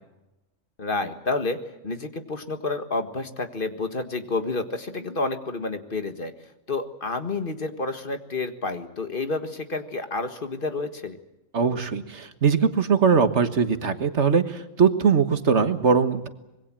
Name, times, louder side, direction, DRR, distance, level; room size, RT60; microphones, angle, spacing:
voice 1, 0.8-1.6 1.8-6.3 6.7-11.2, left 3 dB, 45° left, 8 dB, 1.8 m, -29 dB
voice 2, 11.5-16.3, right 6 dB, 60° right, 10 dB, 1.7 m, -21 dB
25.5 x 22.0 x 7.5 m, 0.94 s
omnidirectional pair, 1.3 m